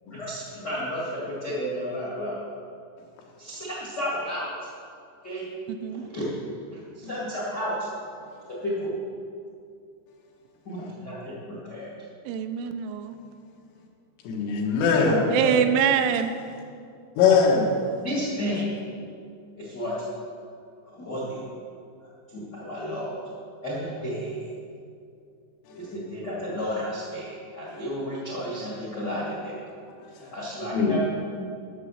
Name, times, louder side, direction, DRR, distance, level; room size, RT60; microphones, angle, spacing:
voice 1, 0.1-2.4 3.4-4.7 5.2-5.5 5.9-6.3 6.7-7.9 8.5-9.0 10.6-11.9 15.0-15.5 18.0-18.7 19.6-20.0 20.8-21.4 22.0-23.2 23.6-24.4 25.7-29.6 30.1-31.0, equal, 65° left, -7 dB, 1.0 m, -32 dB
voice 2, 5.7-6.0 12.3-13.2 15.3-16.3, right 8 dB, 80° right, 8 dB, 2.9 m, -24 dB
voice 3, 14.3-15.2 17.2-17.7 30.7-31.0, left 5 dB, 90° left, 0 dB, 4.0 m, -20 dB
11.5 x 7.3 x 6.4 m, 2.4 s
omnidirectional pair, 5.6 m